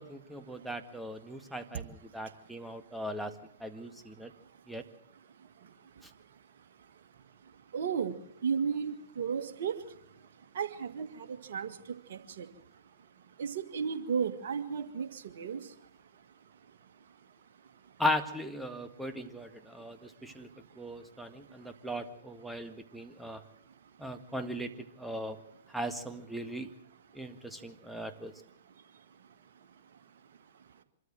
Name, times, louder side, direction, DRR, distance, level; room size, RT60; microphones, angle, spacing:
voice 1, 0.0-3.3 3.6-4.3 4.7-4.8 6.0-6.1 18.0-20.5 20.8-23.4 24.0-24.7 25.0-25.4 25.7-26.7 27.1-28.3, equal, ahead, 7 dB, 1.8 m, -38 dB
voice 2, 7.7-8.1 8.4-9.7 10.6-11.1 11.5-11.7 12.1-12.4 13.4-15.1 15.4-15.6, right 6 dB, 65° right, 7 dB, 2.0 m, -33 dB
25.5 x 13.0 x 7.7 m, 0.78 s
hypercardioid pair, 115°, 0 cm